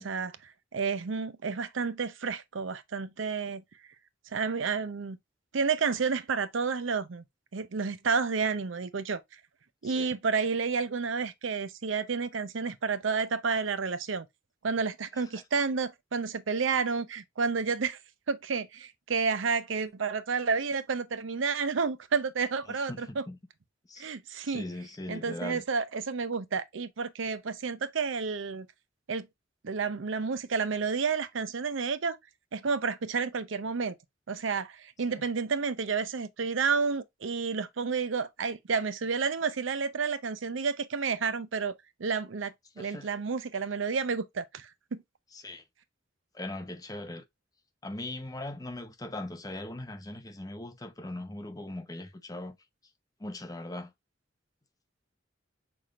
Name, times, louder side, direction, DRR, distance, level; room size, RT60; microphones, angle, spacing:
voice 1, 0.0-3.6 4.3-5.2 5.5-7.2 7.5-9.2 9.8-14.3 14.6-18.0 18.3-23.2 24.0-24.7 25.1-28.7 29.1-29.3 29.6-32.2 32.5-34.0 34.3-45.0, right 5 dB, 85° right, 0.6 m, -30 dB
voice 2, 22.7-23.4 23.9-24.1 24.4-25.6 35.1-35.2 42.8-43.1 45.3-45.6 46.3-47.2 47.8-52.6 53.2-53.9, left 1 dB, 20° left, 0.7 m, -40 dB
5.8 x 3.4 x 2.3 m
head